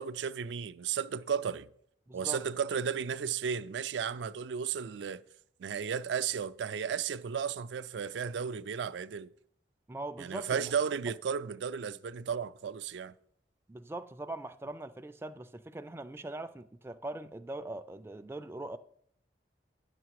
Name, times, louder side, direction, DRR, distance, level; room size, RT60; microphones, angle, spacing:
voice 1, 0.0-1.7 2.1-5.2 5.6-9.3 10.2-13.1, right 7 dB, 85° right, 0.4 m, -34 dB
voice 2, 2.1-2.4 9.9-10.7 13.7-18.8, right 2 dB, 15° right, 0.3 m, -41 dB
10.0 x 6.8 x 4.7 m
head